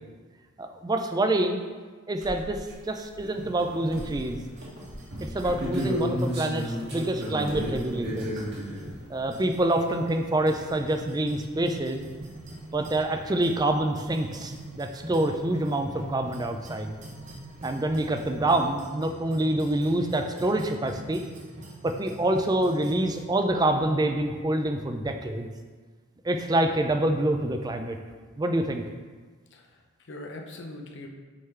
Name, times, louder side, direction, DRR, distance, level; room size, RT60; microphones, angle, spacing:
voice 1, 0.6-1.6 2.1-2.6 2.9-4.4 5.2-8.4 9.1-12.1 12.7-17.0 17.6-21.2 21.8-25.5 26.2-28.0 28.4-28.8, right 1 dB, 20° right, 5 dB, 0.3 m, -26 dB
sound 1, 2.2-2.9 3.1-3.3 3.9-4.5 5.4-5.7 6.5-7.1 7.4-8.1, equal, 70° right, 1.9 m, -42 dB
sound 2, 2.7-2.8 3.2-4.2 4.6-8.9 11.6-11.7 11.8-11.9 13.0-13.1 13.6-13.7 17.3-17.4 17.6-18.0, equal, 50° right, 1.5 m, -32 dB
sound 3, 3.4-23.3, right 1 dB, 35° right, 0.8 m, -44 dB
voice 2, 29.5-31.1, left 2 dB, 55° left, 2 dB, 0.7 m, -42 dB
6.3 x 3.7 x 4.4 m, 1.4 s
head